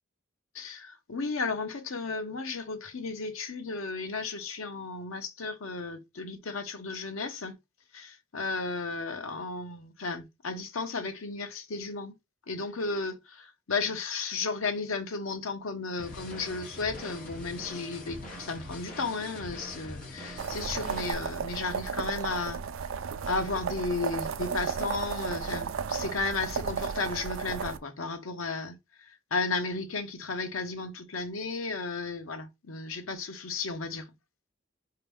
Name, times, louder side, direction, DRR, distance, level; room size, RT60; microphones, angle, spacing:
voice 1, 0.5-7.5 7.9-12.1 12.5-22.6 23.3-28.8 29.3-34.0, left 3 dB, 85° left, 0.8 m, -34 dB
sound 1, 16.0-21.1, left 1 dB, 40° left, 1.2 m, -43 dB
sound 2, 20.4-27.8, right 6 dB, 80° right, 0.4 m, -34 dB
4.2 x 2.8 x 3.5 m
head